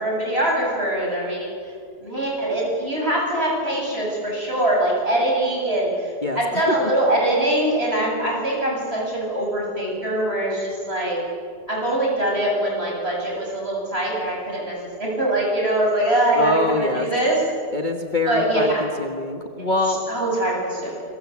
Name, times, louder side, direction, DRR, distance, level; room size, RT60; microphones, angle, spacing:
voice 1, 0.0-1.7 2.0-11.2 11.7-17.4 18.3-18.9 19.6-21.0, right 1 dB, 35° right, -2 dB, 8.3 m, -23 dB
voice 2, 6.2-6.7 16.4-17.1 17.7-20.0, left 2 dB, 30° left, 4 dB, 1.5 m, -24 dB
27.5 x 23.0 x 8.6 m, 2.2 s
omnidirectional pair, 1.8 m